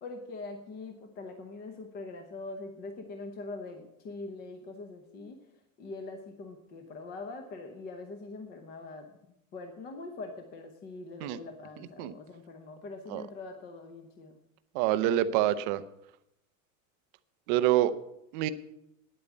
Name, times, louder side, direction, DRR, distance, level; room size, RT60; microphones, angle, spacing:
voice 1, 0.0-5.4 5.8-9.2 9.5-14.4, left 3 dB, 25° left, 6 dB, 0.8 m, -43 dB
voice 2, 14.7-15.8 17.5-17.9 18.3-18.5, right 13 dB, 35° right, 12 dB, 0.5 m, -26 dB
9.5 x 8.6 x 8.2 m, 0.83 s
supercardioid pair, 170°, 41 cm